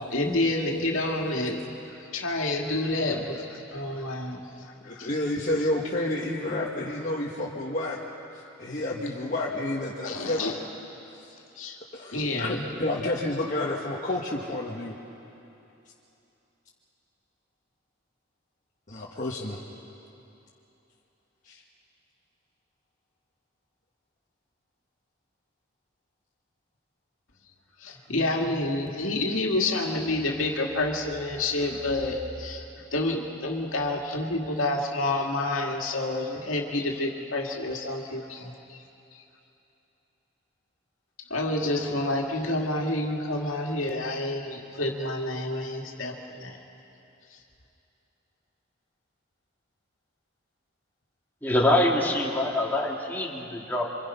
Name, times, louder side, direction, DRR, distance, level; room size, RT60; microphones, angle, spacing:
voice 1, 0.0-1.6 2.1-4.7 4.9-5.1 10.0-10.6 11.6-11.8 12.1-12.7 27.8-32.6 32.9-38.8 41.3-46.6, left 2 dB, 80° left, 0 dB, 2.2 m, -28 dB
voice 2, 4.9-8.0 8.6-10.6 11.9-15.0 18.9-19.6 21.5-21.6, left 1 dB, 40° left, -4 dB, 1.6 m, -30 dB
voice 3, 51.4-53.9, left 1 dB, 10° left, -2 dB, 2.3 m, -24 dB
27.5 x 25.5 x 5.7 m, 2.9 s
head